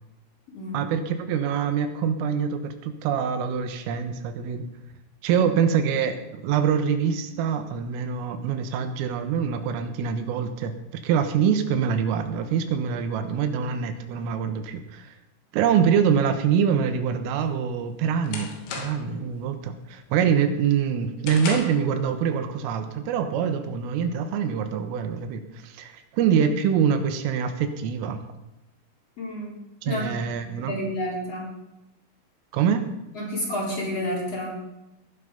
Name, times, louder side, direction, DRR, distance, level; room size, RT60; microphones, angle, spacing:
voice 1, 0.7-4.7 5.2-10.7 11.0-15.1 15.5-28.2 29.8-30.8 32.5-32.8, right 7 dB, 85° right, 8 dB, 3.8 m, -25 dB
sound 1, 17.4-19.2 19.6-20.0 20.4-21.9, left 5 dB, 90° left, 4.9 m, -36 dB
voice 2, 29.2-29.6 29.9-30.1 30.7-31.5 33.1-34.6, left 1 dB, 30° left, -3 dB, 4.6 m, -30 dB
19.0 x 11.5 x 5.3 m, 0.93 s
omnidirectional pair, 5.7 m